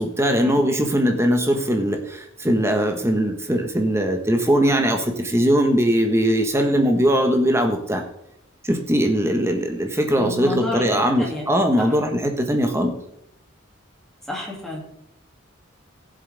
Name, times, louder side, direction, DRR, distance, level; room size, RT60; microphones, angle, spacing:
voice 1, 0.0-8.0 8.6-12.9, equal, 15° right, 4 dB, 1.4 m, -20 dB
voice 2, 10.1-11.5 11.8-11.9 14.3-14.8, left 1 dB, ahead, -2 dB, 2.6 m, -30 dB
17.0 x 7.7 x 3.5 m, 0.78 s
head